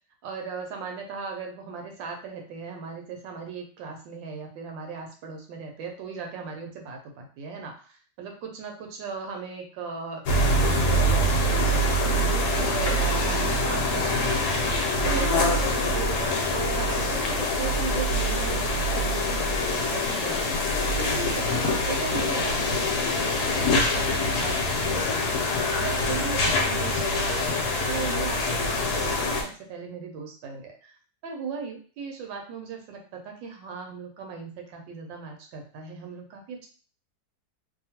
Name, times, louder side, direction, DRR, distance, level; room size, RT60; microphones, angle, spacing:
voice 1, 0.2-7.7 8.2-20.7 20.9-27.6 27.9-31.0 31.2-36.7, right 5 dB, 80° right, 2 dB, 1.3 m, -37 dB
sound 1, 10.3-29.4, left 1 dB, 70° left, 1.0 m, -24 dB
2.8 x 2.6 x 2.8 m, 0.41 s
omnidirectional pair, 2.0 m